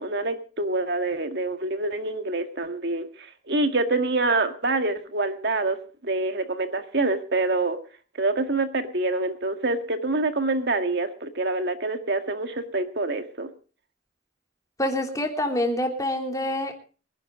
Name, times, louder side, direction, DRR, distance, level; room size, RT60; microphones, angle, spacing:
voice 1, 0.0-5.8 6.0-7.8 8.2-13.5, right 2 dB, 60° right, 7 dB, 1.9 m, -26 dB
voice 2, 14.8-16.8, left 1 dB, 20° left, 2 dB, 3.1 m, -26 dB
24.5 x 11.0 x 3.8 m, 0.38 s
head